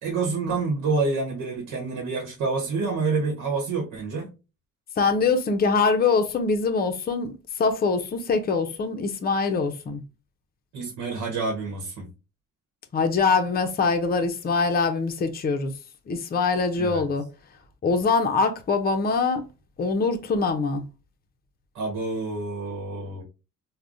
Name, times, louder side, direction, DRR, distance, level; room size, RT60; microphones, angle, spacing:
voice 1, 0.0-4.3 10.7-12.1 16.7-17.0 21.7-23.2, right 3 dB, 85° right, 1.0 m, -28 dB
voice 2, 5.0-10.0 12.9-15.7 16.1-17.3 17.8-19.4 19.8-20.8, left 4 dB, 30° left, 0.5 m, -23 dB
3.4 x 2.1 x 2.5 m
cardioid pair, 90°, 30 cm